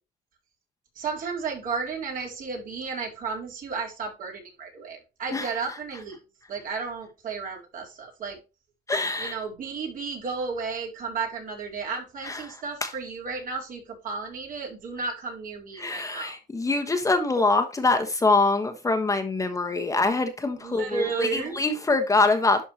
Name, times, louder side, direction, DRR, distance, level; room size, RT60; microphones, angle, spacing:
voice 1, 1.0-6.2 6.5-8.4 9.2-16.4 20.6-21.6, right 5 dB, 55° right, 4.0 m, -33 dB
voice 2, 8.9-9.4 12.2-12.5 12.8-12.9 15.8-22.7, left 3 dB, 20° left, 1.3 m, -24 dB
11.5 x 4.5 x 3.0 m
cardioid pair, 110°, 17 cm